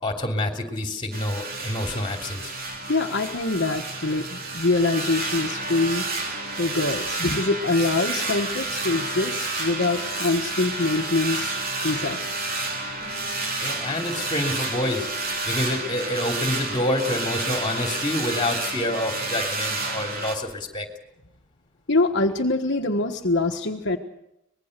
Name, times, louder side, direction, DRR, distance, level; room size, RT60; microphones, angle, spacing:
voice 1, 0.0-2.5 13.6-20.9, left 1 dB, 25° left, 3 dB, 3.2 m, -27 dB
sound 1, 1.1-20.4, right 3 dB, 45° right, 3.3 m, -30 dB
sound 2, 1.5-20.2, left 1 dB, 85° right, 6.6 m, -48 dB
voice 2, 2.9-6.0 6.6-11.5 11.8-12.2 21.9-24.0, left 2 dB, 60° left, 2 dB, 1.3 m, -24 dB
sound 3, 13.0-18.4, left 1 dB, 5° right, 5.1 m, -48 dB
24.5 x 21.0 x 6.7 m, 0.84 s
head